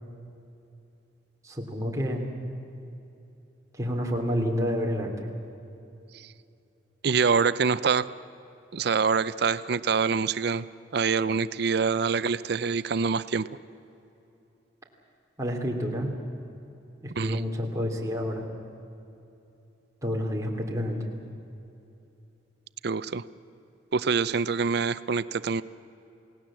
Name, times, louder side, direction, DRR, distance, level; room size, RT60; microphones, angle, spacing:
voice 1, 1.4-2.3 3.7-5.3 15.4-16.1 17.0-18.5 20.0-21.0, equal, 20° right, -1 dB, 3.1 m, -29 dB
voice 2, 7.0-8.0 8.7-10.6 10.9-13.5 17.2-17.4 22.8-23.2 23.9-25.6, right 5 dB, 60° right, 15 dB, 0.5 m, -25 dB
28.5 x 18.0 x 7.6 m, 2.8 s
head